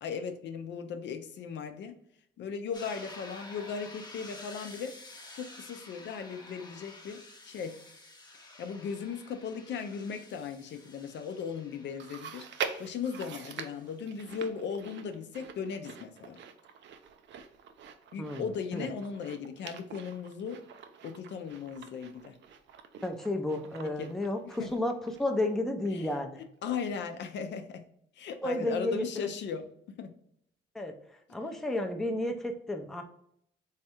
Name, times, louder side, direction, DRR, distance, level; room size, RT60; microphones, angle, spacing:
voice 1, 0.0-2.0 2.4-5.0 5.3-7.2 7.4-7.8 8.6-12.5 12.8-16.4 18.1-20.6 21.0-22.4 23.8-24.1 24.6-24.7 25.9-26.2 26.6-27.9 28.2-30.1, left 6 dB, 65° left, 7 dB, 0.5 m, -37 dB
sound 1, 2.7-14.4, left 2 dB, 20° left, 0.8 m, -51 dB
Chewing mastication, 12.0-25.5 25.8-25.9 26.8-26.9, right 7 dB, 65° right, 0.5 m, -44 dB
voice 2, 18.2-18.9 23.0-26.4 28.4-29.3 30.7-31.0 31.3-33.0, left 1 dB, ahead, 3 dB, 0.5 m, -32 dB
3.5 x 3.2 x 2.8 m, 0.71 s
cardioid pair, 90°, 20 cm